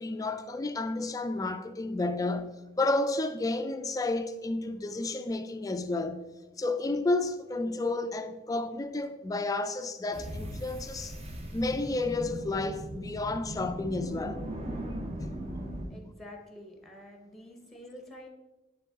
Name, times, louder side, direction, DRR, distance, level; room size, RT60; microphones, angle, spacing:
voice 1, 0.0-6.3 6.6-11.2 11.5-14.5 15.2-15.5, left 2 dB, 20° left, 0.3 m, -31 dB
sound 1, 10.1-15.9, right 1 dB, 30° right, 0.7 m, -38 dB
voice 2, 15.9-18.3, left 1 dB, ahead, 0.8 m, -48 dB
10.0 x 3.4 x 3.5 m
head